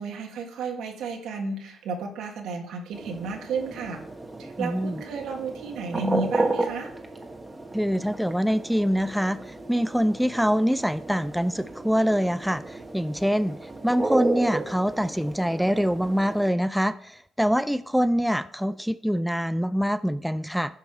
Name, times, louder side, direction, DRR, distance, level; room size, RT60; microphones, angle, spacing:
voice 1, 0.0-4.0 4.4-6.9, right 4 dB, 85° right, 3 dB, 1.7 m, -32 dB
sound 1, 2.9-16.5, right 2 dB, 15° right, 1.3 m, -33 dB
voice 2, 4.6-5.0 7.7-13.6 13.8-20.8, equal, ahead, 13 dB, 0.3 m, -25 dB
10.0 x 5.6 x 4.6 m, 0.66 s
cardioid pair, 90°, 0 cm